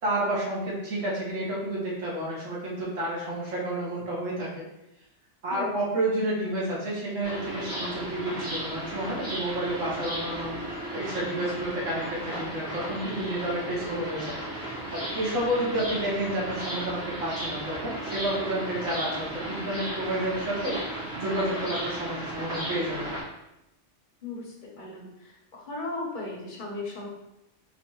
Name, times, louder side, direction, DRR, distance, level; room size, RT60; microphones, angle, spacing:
voice 1, 0.0-4.6 5.4-10.5 10.9-14.3 14.6-23.1, right 1 dB, 90° right, -6 dB, 1.7 m, -30 dB
voice 2, 5.5-5.8 24.2-27.1, left 2 dB, 45° left, -3 dB, 1.1 m, -37 dB
sound 1, 7.2-23.2, right 1 dB, 55° right, 1.9 m, -35 dB
3.8 x 3.5 x 3.1 m, 0.90 s
omnidirectional pair, 1.3 m